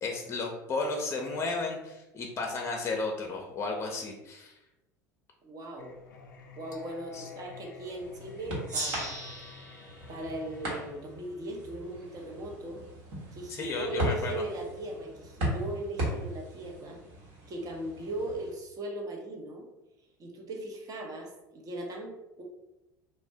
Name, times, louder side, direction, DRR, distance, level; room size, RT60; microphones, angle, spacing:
voice 1, 0.0-4.5 7.1-7.3 13.5-14.4, left 3 dB, 30° left, 1 dB, 0.6 m, -33 dB
voice 2, 5.4-6.0 6.6-9.1 10.1-12.8 13.3-17.0 17.5-19.7 20.2-22.4, right 1 dB, 40° right, 1 dB, 0.8 m, -38 dB
Singing, 5.8-10.7, left 5 dB, 80° left, 0.4 m, -50 dB
sound 1, 7.5-18.5, right 1 dB, 65° right, 1.1 m, -38 dB
Gong, 8.7-11.8, right 2 dB, 85° right, 0.7 m, -40 dB
2.5 x 2.1 x 3.3 m, 0.95 s
hypercardioid pair, 75°, 10 cm